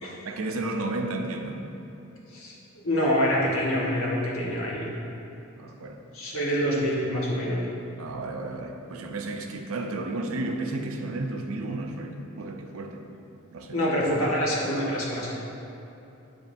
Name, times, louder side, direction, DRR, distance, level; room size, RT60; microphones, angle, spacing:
voice 1, 0.2-1.6 5.6-6.0 8.0-13.1 13.5-13.8, right 2 dB, 80° right, 4 dB, 0.5 m, -32 dB
voice 2, 2.3-4.9 6.1-7.6 13.7-15.3, equal, 70° left, -5 dB, 1.2 m, -26 dB
7.2 x 5.1 x 2.6 m, 2.9 s
head